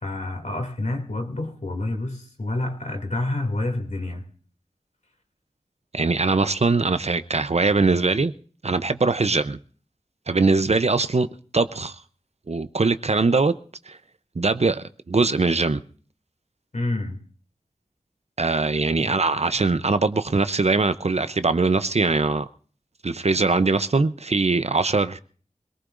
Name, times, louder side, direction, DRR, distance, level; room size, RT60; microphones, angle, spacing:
voice 1, 0.0-4.3 9.2-9.3 16.7-17.2 19.0-19.1, left 2 dB, 65° left, 2.7 m, -28 dB
voice 2, 5.9-8.3 8.6-9.6 10.3-11.3 11.5-12.0 12.5-13.5 13.9-14.0 14.4-15.8 18.4-22.5 23.0-25.2, right 3 dB, 55° right, 0.7 m, -21 dB
24.5 x 18.5 x 2.6 m
wide cardioid pair, 50°, 13 cm